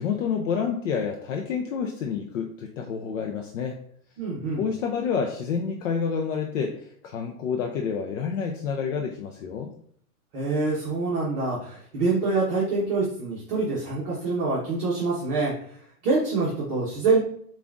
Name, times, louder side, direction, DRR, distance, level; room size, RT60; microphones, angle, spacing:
voice 1, 0.0-3.8 4.6-9.7, left 6 dB, 55° left, 3 dB, 0.5 m, -28 dB
voice 2, 4.2-4.6 10.3-15.5 16.0-17.2, right 3 dB, 30° right, -6 dB, 0.9 m, -25 dB
6.9 x 2.5 x 2.5 m, 0.63 s
hypercardioid pair, 150°, 45 cm